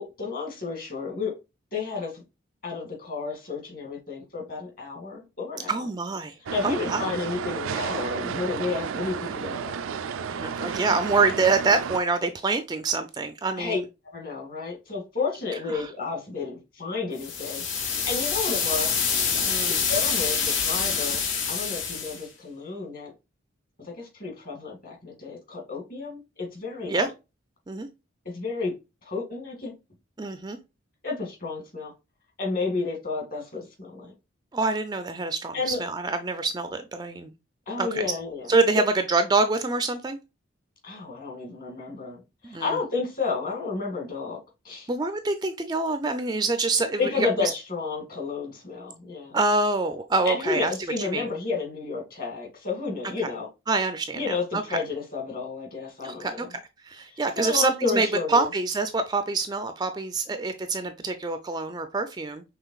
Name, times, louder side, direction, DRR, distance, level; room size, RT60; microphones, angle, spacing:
voice 1, 0.0-1.3 1.7-2.2 2.6-5.9 6.5-9.8 10.4-10.7 13.6-13.8 14.0-18.9 19.8-23.1 23.8-27.1 28.3-28.7 29.0-29.7 31.0-31.9 32.4-34.1 35.5-35.8 37.7-38.5 40.8-44.4 44.6-44.9 47.0-49.4 50.2-53.5 54.1-56.5 57.1-58.5, left 4 dB, 45° left, 1.9 m, -31 dB
voice 2, 5.7-6.3 6.6-7.1 10.3-13.8 15.7-15.9 19.5-19.8 26.9-27.1 27.7-27.9 30.2-30.6 34.5-37.3 37.8-38.1 38.5-40.2 42.4-42.7 44.9-47.5 49.3-50.7 51.1-51.3 53.7-54.6 56.0-56.6 56.9-62.4, right 3 dB, 20° right, 0.4 m, -26 dB
sound 1, 6.5-12.0, right 6 dB, 90° right, 0.4 m, -32 dB
sound 2, 17.2-22.2, left 6 dB, 70° left, 1.2 m, -26 dB
5.7 x 3.3 x 2.3 m
head